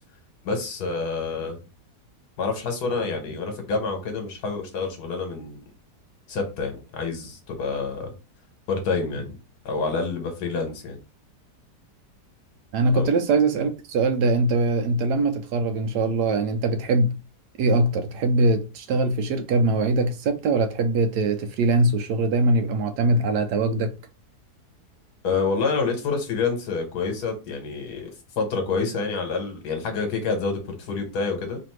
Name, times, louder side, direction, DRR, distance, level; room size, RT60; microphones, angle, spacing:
voice 1, 0.4-1.6 2.4-5.6 6.3-8.1 8.7-9.4 9.6-11.0 12.9-13.1 25.2-31.6, left 4 dB, 75° left, 1.6 m, -27 dB
voice 2, 12.7-17.1 17.6-23.9, right 2 dB, 85° right, 1.2 m, -22 dB
3.3 x 2.6 x 4.5 m
omnidirectional pair, 1.7 m